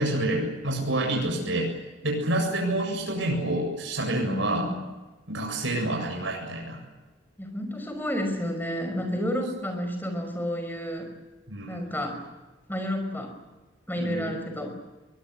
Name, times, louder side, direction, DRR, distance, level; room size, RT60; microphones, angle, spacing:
voice 1, 0.0-1.7 2.0-4.8 5.3-6.8 11.5-11.8 14.0-14.3, right 1 dB, 75° right, 0 dB, 7.7 m, -28 dB
voice 2, 1.2-1.5 4.2-4.9 7.4-11.1 11.7-12.2 12.7-13.3 13.9-14.8, equal, 10° left, 5 dB, 5.6 m, -31 dB
23.5 x 21.5 x 9.8 m, 1.1 s
head